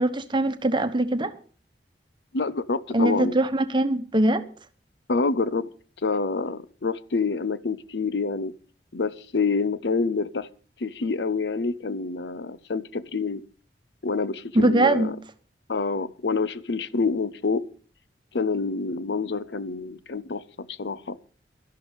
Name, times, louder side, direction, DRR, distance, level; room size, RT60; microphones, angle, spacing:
voice 1, 0.0-1.3 2.9-4.4 14.5-15.1, right 1 dB, 30° right, 1.1 m, -22 dB
voice 2, 2.3-3.4 5.1-5.7 6.0-8.5 8.9-10.5 10.8-13.4 14.0-15.2 15.7-17.7 18.3-21.2, left 4 dB, 70° left, 0.7 m, -27 dB
12.5 x 11.5 x 5.2 m
head